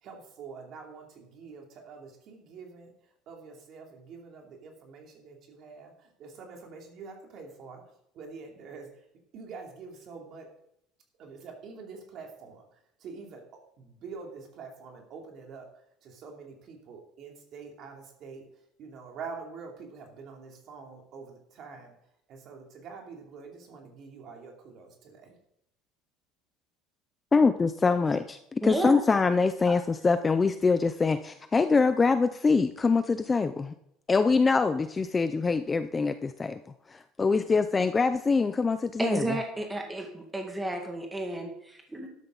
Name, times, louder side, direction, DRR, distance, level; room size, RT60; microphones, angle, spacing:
voice 1, 0.0-9.1 9.3-10.5 11.2-21.9 22.3-25.4, right 5 dB, 40° right, 1 dB, 2.8 m, -46 dB
voice 2, 27.3-33.7 34.1-36.6 36.9-39.3, left 4 dB, 15° left, 10 dB, 0.4 m, -24 dB
voice 3, 28.6-29.0 39.0-42.1, right 1 dB, 5° right, 2 dB, 1.9 m, -32 dB
12.5 x 12.0 x 3.9 m, 0.75 s
cardioid pair, 175°, 0 cm